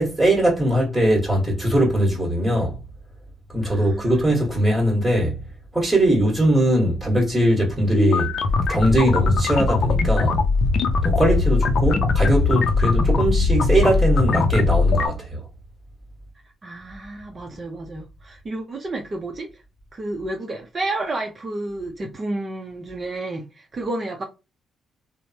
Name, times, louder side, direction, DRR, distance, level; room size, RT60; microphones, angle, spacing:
voice 1, 0.0-2.8 3.5-5.4 5.7-8.3 8.7-10.4 11.0-15.4, right 1 dB, 10° right, 1.4 m, -20 dB
voice 2, 3.6-4.2 16.6-19.6 19.9-24.2, right 2 dB, 35° right, 0.6 m, -31 dB
sound 1, 8.0-15.1, left 3 dB, 60° left, 0.5 m, -20 dB
3.1 x 2.1 x 2.8 m
cardioid pair, 90°, 0 cm